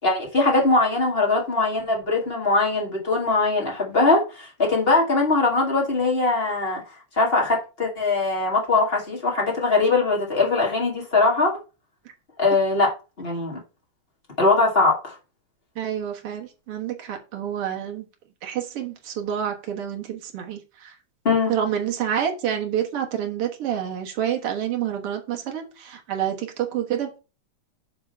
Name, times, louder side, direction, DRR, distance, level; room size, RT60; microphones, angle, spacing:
voice 1, 0.0-6.8 7.2-11.5 12.4-12.9 13.2-13.6 14.4-15.1 21.2-21.5, left 3 dB, 30° left, 1.0 m, -21 dB
voice 2, 15.7-18.1 18.4-21.0 21.5-27.2, right 9 dB, 75° right, 1.3 m, -28 dB
9.5 x 3.7 x 5.5 m
omnidirectional pair, 4.5 m